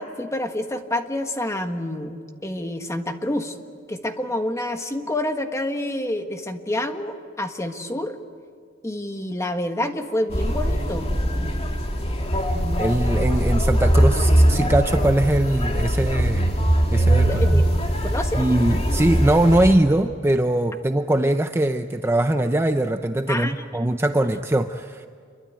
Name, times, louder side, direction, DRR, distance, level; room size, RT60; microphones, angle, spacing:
voice 1, 0.0-3.6 3.9-8.2 8.8-11.1 17.2-17.8 18.0-18.5 23.3-23.5, left 1 dB, 15° left, 6 dB, 1.5 m, -28 dB
sound 1, 10.3-19.7, right 1 dB, 30° left, 2.4 m, -21 dB
voice 2, 12.8-16.5 16.9-17.6 18.4-25.1, right 1 dB, 15° right, 7 dB, 0.6 m, -21 dB
27.5 x 23.0 x 8.9 m, 2.1 s
head